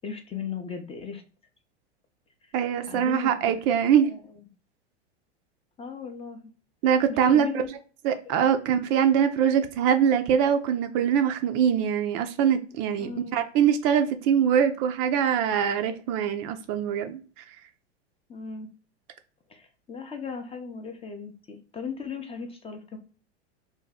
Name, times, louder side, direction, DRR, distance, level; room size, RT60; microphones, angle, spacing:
voice 1, 0.0-1.2 2.4-2.5 2.9-3.5 4.1-4.2 5.8-6.5 7.1-7.7 8.3-8.8 13.0-13.5 18.3-18.7 19.5-23.0, left 6 dB, 20° left, 0.4 m, -37 dB
voice 2, 2.5-4.1 6.8-7.5 8.0-17.4, right 8 dB, 45° right, 0.4 m, -23 dB
2.6 x 2.2 x 3.9 m
hypercardioid pair, 105°, 33 cm